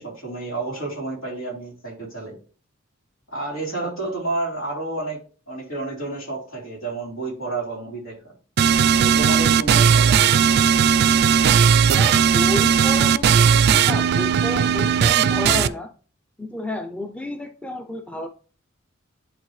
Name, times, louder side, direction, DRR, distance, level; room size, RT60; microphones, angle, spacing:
voice 1, 0.0-2.4 3.3-8.3 8.9-10.5, right 2 dB, 85° left, 3.2 m, -30 dB
sound 1, 8.6-15.7, right 7 dB, 55° right, 0.3 m, -17 dB
voice 2, 12.0-15.9 16.4-18.3, left 1 dB, 5° left, 0.4 m, -31 dB
10.5 x 3.9 x 3.1 m
head